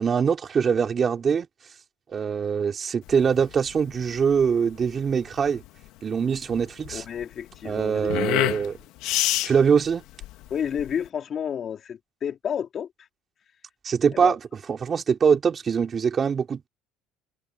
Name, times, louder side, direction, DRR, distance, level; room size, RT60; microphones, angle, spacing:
voice 1, 0.0-1.5 2.1-5.6 6.0-7.0 7.6-8.8 9.4-10.0 13.8-14.4 14.7-16.7, right 6 dB, 30° right, 4.1 m, -23 dB
sound 1, 3.0-11.1, left 16 dB, 70° left, 1.4 m, -29 dB
voice 2, 6.9-8.2 10.5-12.9 14.1-14.3, left 8 dB, 35° left, 3.2 m, -31 dB
cardioid pair, 130°, 0 cm